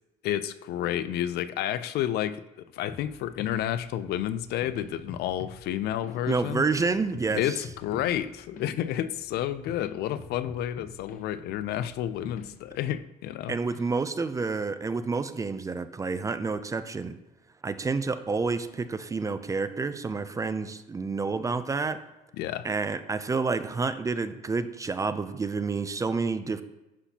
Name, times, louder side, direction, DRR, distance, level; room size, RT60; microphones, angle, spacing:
voice 1, 0.2-6.6 7.3-13.6 22.4-22.7, left 11 dB, 70° left, 14 dB, 0.4 m, -30 dB
sound 1, 2.9-13.0, left 4 dB, 50° left, 0.8 m, -46 dB
voice 2, 6.3-7.4 13.5-17.2 17.6-22.0 22.6-26.6, right 4 dB, 20° right, 12 dB, 0.4 m, -29 dB
11.0 x 4.1 x 2.8 m, 1.0 s
cardioid pair, 110°, 17 cm